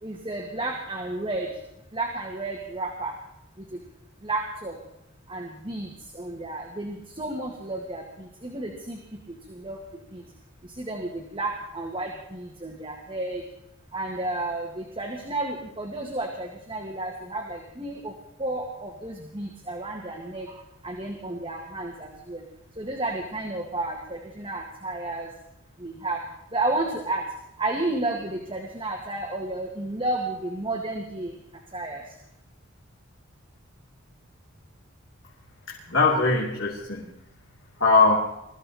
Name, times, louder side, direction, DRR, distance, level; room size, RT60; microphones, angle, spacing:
voice 1, 0.0-1.5 1.9-3.1 3.6-3.8 4.2-4.8 5.3-9.0 9.3-10.3 10.6-13.4 13.9-18.1 18.4-22.4 22.8-25.3 25.8-26.2 26.5-27.3 27.6-31.3 31.7-32.1, right 2 dB, 25° right, 1 dB, 1.9 m, -32 dB
voice 2, 35.7-37.1 37.8-38.1, left 3 dB, 65° left, -3 dB, 3.0 m, -21 dB
22.0 x 14.5 x 4.2 m, 0.84 s
head